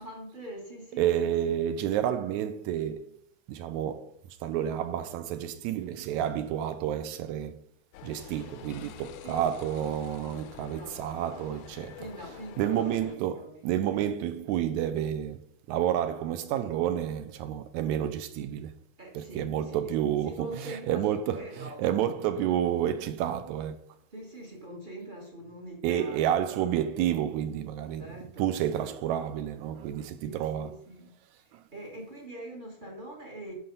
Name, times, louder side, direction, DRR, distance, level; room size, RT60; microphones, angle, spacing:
voice 1, 0.0-1.6 9.2-9.5 10.8-11.1 12.0-14.1 19.0-19.8 20.2-22.5 24.1-26.6 28.0-29.0 30.2-31.1 31.4-33.5, right 1 dB, 35° right, 0.8 m, -44 dB
voice 2, 1.0-3.1 3.5-4.1 4.4-7.6 8.0-12.0 12.6-15.4 15.7-18.7 19.1-23.8 25.8-28.1 28.4-30.7 31.5-31.6, right 10 dB, 80° right, 1.7 m, -30 dB
sound 1, 7.9-13.2, left 11 dB, 80° left, 2.1 m, -47 dB
11.5 x 4.1 x 5.4 m
omnidirectional pair, 3.9 m